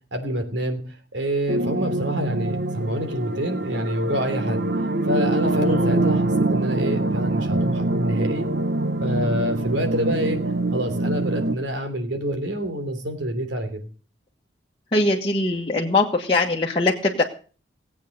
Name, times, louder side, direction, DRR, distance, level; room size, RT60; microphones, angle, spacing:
voice 1, 0.1-0.8 1.1-4.6 5.0-8.5 9.0-10.4 10.7-13.8, equal, 90° right, 6 dB, 3.3 m, -27 dB
sound 1, 1.5-11.6, right 2 dB, 65° right, 1.0 m, -24 dB
voice 2, 5.6-6.0 14.9-17.2, left 2 dB, 30° left, -3 dB, 1.5 m, -22 dB
18.5 x 8.4 x 6.6 m, 0.39 s
head